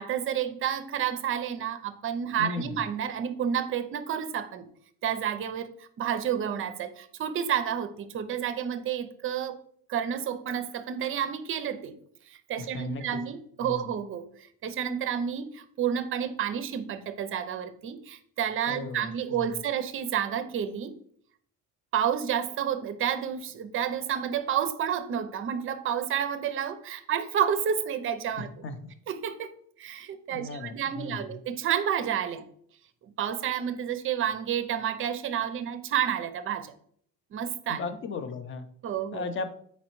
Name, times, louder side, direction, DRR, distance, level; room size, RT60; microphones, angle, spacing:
voice 1, 0.0-4.7 5.0-9.6 9.9-12.0 12.3-20.9 21.9-28.5 29.1-29.5 29.8-32.5 33.0-36.7 37.3-37.8 38.8-39.3, right 9 dB, 35° right, 11 dB, 0.5 m, -30 dB
voice 2, 2.4-2.8 12.6-13.2 13.6-13.8 18.7-19.4 28.6-28.9 30.3-31.3 37.7-38.6 39.1-39.5, left 4 dB, 35° left, 8 dB, 0.6 m, -36 dB
4.1 x 4.0 x 3.0 m, 0.62 s
cardioid pair, 110°, 37 cm